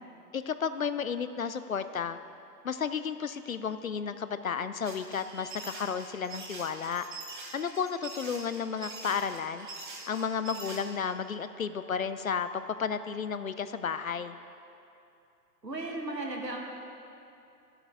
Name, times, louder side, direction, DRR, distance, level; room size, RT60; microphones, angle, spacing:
voice 1, 0.3-2.2 2.6-7.0 7.5-9.7 10.1-14.4, left 6 dB, 60° left, 11 dB, 0.5 m, -32 dB
sound 1, 4.8-10.8, right 3 dB, 30° right, 1.2 m, -44 dB
voice 2, 15.6-16.6, right 2 dB, 80° right, 0 dB, 1.8 m, -35 dB
12.0 x 7.9 x 4.7 m, 2.7 s
figure-of-eight pair, 135°, 49 cm